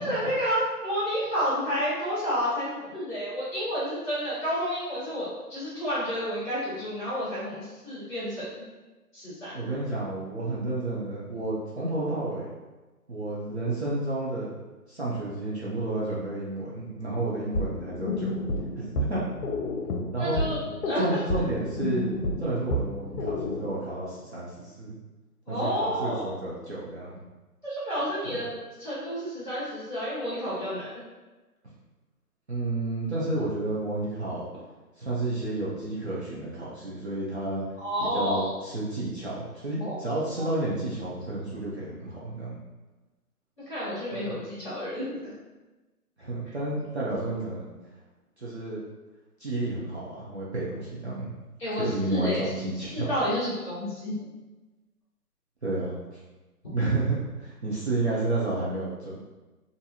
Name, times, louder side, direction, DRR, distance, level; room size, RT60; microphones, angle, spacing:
voice 1, 0.0-8.5 9.1-9.5 20.2-20.6 20.8-21.0 25.5-26.3 27.6-28.5 28.8-31.0 37.8-38.5 39.8-39.9 40.4-40.5 43.7-45.3 51.6-52.5 52.9-54.2, equal, 10° left, -17 dB, 0.9 m, -30 dB
voice 2, 9.5-12.6 13.1-14.6 14.9-18.3 18.8-19.2 20.1-20.4 21.0-22.0 22.4-25.0 25.5-27.2 28.2-28.4 32.5-34.5 35.0-37.6 38.0-42.6 44.1-44.3 46.2-47.7 48.4-48.8 49.4-51.3 51.8-53.2 55.6-56.2 56.7-59.2, right 2 dB, 45° right, -8 dB, 0.5 m, -31 dB
sound 1, 17.5-23.7, left 1 dB, 75° left, 0.6 m, -31 dB
2.8 x 2.6 x 2.3 m, 1.2 s
hypercardioid pair, 160°, 47 cm